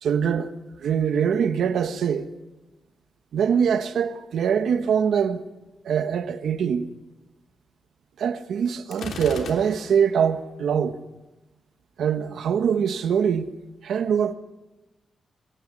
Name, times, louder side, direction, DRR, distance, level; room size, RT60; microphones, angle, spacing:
voice 1, 0.0-0.5 0.8-2.3 3.3-5.4 5.8-6.9 8.2-11.0 12.0-13.5 13.8-14.3, right 7 dB, 85° right, 1.5 m, -23 dB
Gunshot gunfire, 8.9-10.2, left 4 dB, 80° left, 3.5 m, -37 dB
29.0 x 23.0 x 5.6 m
wide cardioid pair, 175°, 0 cm